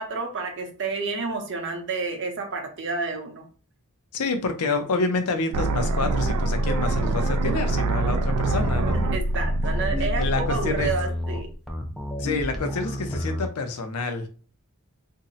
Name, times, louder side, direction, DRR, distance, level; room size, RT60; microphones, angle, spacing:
voice 1, 0.0-3.4 8.9-11.5, right 3 dB, 55° right, 0.7 m, -30 dB
voice 2, 4.1-9.0 10.0-10.9 12.2-14.3, left 3 dB, 90° left, 0.6 m, -28 dB
sound 1, 5.5-11.5, right 2 dB, 90° right, 0.3 m, -25 dB
sound 2, 8.5-13.5, left 1 dB, ahead, 0.3 m, -31 dB
2.6 x 2.0 x 3.8 m
head